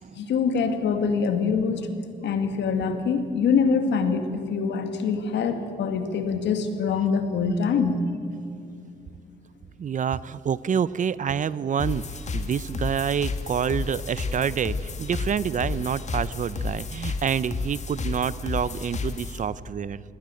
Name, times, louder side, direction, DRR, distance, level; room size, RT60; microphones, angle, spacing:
voice 1, 0.2-1.9 2.2-8.1, left 5 dB, 70° left, 7 dB, 2.2 m, -24 dB
voice 2, 9.8-20.0, right 7 dB, 45° right, 18 dB, 0.6 m, -27 dB
sound 1, 11.8-19.4, left 3 dB, 40° left, 2.0 m, -32 dB
19.0 x 17.0 x 9.0 m, 2.5 s
cardioid pair, 80°, 19 cm